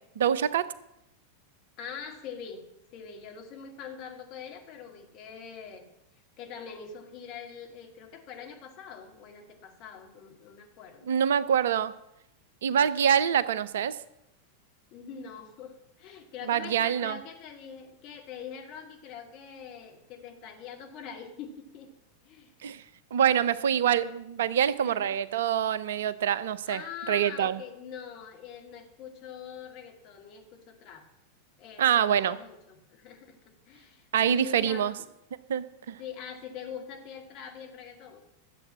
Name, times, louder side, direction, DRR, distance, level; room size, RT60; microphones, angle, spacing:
voice 1, 0.2-0.7 11.1-11.9 12.6-14.0 16.5-17.2 22.6-22.8 23.1-26.8 27.1-27.6 31.8-32.4 34.1-34.9 35.5-36.0, right 9 dB, 60° right, 16 dB, 0.6 m, -25 dB
voice 2, 1.8-2.6 2.9-5.8 6.4-11.1 14.9-21.9 22.2-22.5 24.8-25.1 26.7-31.1 31.6-35.1 36.0-38.2, left 7 dB, 40° left, 3 dB, 2.3 m, -44 dB
12.5 x 7.7 x 7.3 m, 0.84 s
figure-of-eight pair, 90°, 0 cm